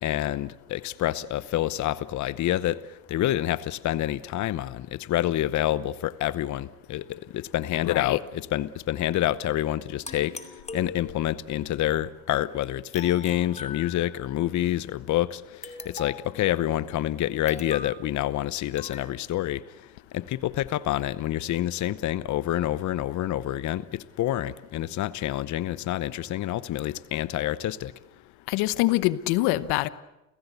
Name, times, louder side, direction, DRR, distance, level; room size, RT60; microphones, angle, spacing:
voice 1, 0.0-10.4 10.7-27.9, left 13 dB, 50° left, 0.9 m, -28 dB
voice 2, 7.8-8.2 28.5-29.9, left 17 dB, 80° left, 1.1 m, -24 dB
sound 1, 10.0-11.5 12.9-14.4 15.6-16.4 17.5-18.0 18.8-19.1, left 4 dB, 15° left, 2.6 m, -41 dB
30.0 x 16.0 x 8.2 m
cardioid pair, 110°, 38 cm